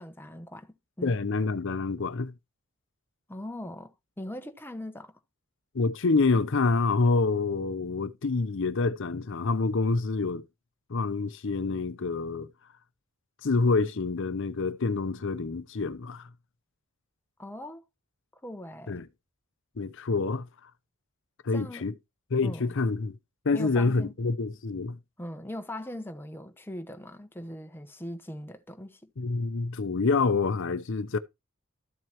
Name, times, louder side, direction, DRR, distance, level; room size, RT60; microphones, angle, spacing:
voice 1, 0.0-1.2 1.4-1.5 3.3-5.2 17.4-17.8 18.4-19.1 21.5-21.9 22.4-22.7 23.5-24.1 25.2-29.1, left 1 dB, 10° left, 1.0 m, -40 dB
voice 2, 1.0-2.3 5.7-10.5 10.9-12.5 13.4-16.3 18.9-19.1 19.8-20.7 21.4-21.9 22.3-23.2 23.4-25.0 29.2-31.2, left 3 dB, 60° left, 0.7 m, -27 dB
13.5 x 7.7 x 2.9 m
head